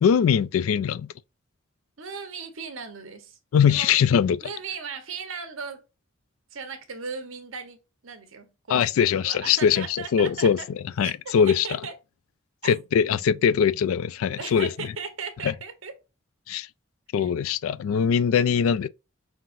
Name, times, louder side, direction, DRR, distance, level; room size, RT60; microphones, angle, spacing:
voice 1, 0.0-1.1 3.5-4.4 8.7-10.6 11.0-11.7 12.6-14.7 15.4-15.5 16.5-16.7 17.1-18.9, left 7 dB, 85° left, 0.3 m, -21 dB
voice 2, 2.0-3.4 3.7-4.0 4.4-5.8 6.5-7.8 8.0-10.7 11.0-11.9 12.6-12.7 14.3-15.9 17.2-17.3, right 5 dB, 80° right, 1.0 m, -37 dB
5.6 x 2.8 x 2.6 m
head